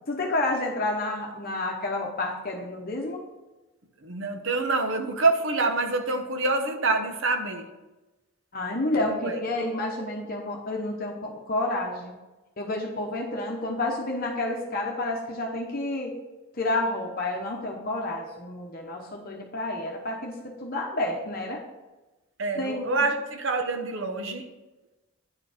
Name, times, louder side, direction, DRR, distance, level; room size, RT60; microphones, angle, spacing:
voice 1, 0.1-3.2 8.5-12.1 12.6-16.1 16.6-21.6 22.6-22.9, left 2 dB, 40° left, 0 dB, 0.9 m, -30 dB
voice 2, 4.0-7.7 9.0-9.4 22.4-24.5, right 3 dB, 60° right, 6 dB, 0.9 m, -26 dB
9.7 x 4.8 x 5.0 m, 1.1 s
head